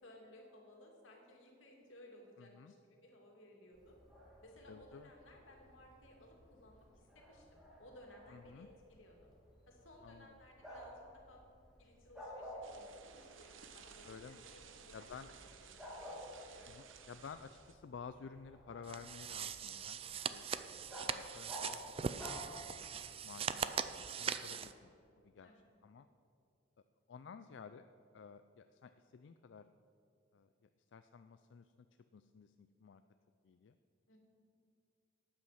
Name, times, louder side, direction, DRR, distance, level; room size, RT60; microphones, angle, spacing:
voice 1, 0.0-4.0 4.4-9.1 9.7-10.9 11.3-11.4 11.8-15.6 16.0-16.8 20.4-20.8 24.4-24.6 25.4-25.6 34.1-34.2, left 1 dB, 90° left, 0 dB, 2.5 m, -60 dB
voice 2, 2.4-2.7 4.7-5.1 8.3-8.7 10.0-10.4 14.0-14.4 14.9-15.3 16.7-20.0 20.3-20.4 21.0-24.9 25.2-25.5 25.8-26.1 27.1-27.9 28.1-29.6 30.3-30.5 30.9-31.9 32.1-33.0 33.4-33.8, left 6 dB, 70° left, 10 dB, 0.4 m, -53 dB
Bark, 3.7-23.1, equal, 5° right, 2.6 m, -54 dB
sound 1, 12.6-17.8, right 6 dB, 85° right, 0.8 m, -57 dB
sound 2, 18.8-24.7, right 7 dB, 30° right, 0.4 m, -41 dB
12.5 x 8.9 x 5.8 m, 2.6 s
head